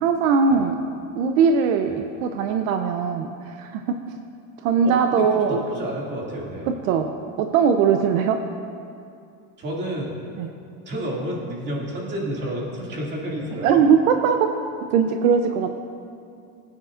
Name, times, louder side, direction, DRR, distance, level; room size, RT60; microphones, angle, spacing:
voice 1, 0.0-0.8 1.1-4.0 4.6-5.7 6.9-7.1 7.4-8.4 10.4-10.5 13.6-14.5 14.9-15.7, right 6 dB, 75° right, 5 dB, 0.8 m, -20 dB
voice 2, 4.8-6.7 9.6-10.2 10.9-13.8, right 1 dB, 25° right, -3 dB, 2.5 m, -30 dB
20.5 x 8.9 x 2.5 m, 2.4 s
supercardioid pair, 150°, 40 cm